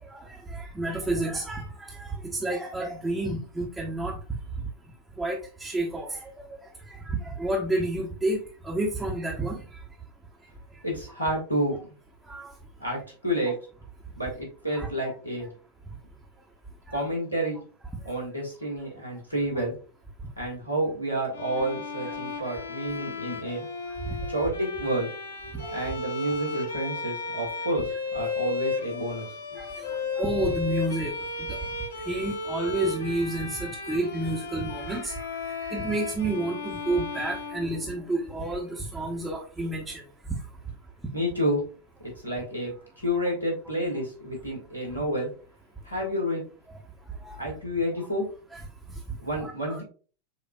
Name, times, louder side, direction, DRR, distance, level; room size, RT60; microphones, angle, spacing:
voice 1, 0.1-4.2 5.2-6.3 6.9-8.4 8.6-9.6 12.3-12.5 14.7-14.9 16.9-17.0 24.0-24.1 25.6-25.7 29.6-31.1 31.4-31.6 32.1-35.3 35.6-40.0 44.9-45.0 46.7-46.8 47.2-47.4 48.5-48.6 49.3-49.8, right 2 dB, 5° right, -3 dB, 0.8 m, -30 dB
voice 2, 10.8-11.8 12.8-13.5 14.1-15.5 16.9-17.6 18.0-19.8 20.4-23.7 24.3-25.1 25.7-29.6 41.1-41.6 42.2-45.3 45.8-46.4 47.4-48.3 49.2-49.8, equal, 85° left, -2 dB, 1.6 m, -29 dB
Bowed string instrument, 21.3-38.3, left 3 dB, 65° left, 0.7 m, -34 dB
6.8 x 2.5 x 2.3 m, 0.38 s
figure-of-eight pair, 90°, 0 cm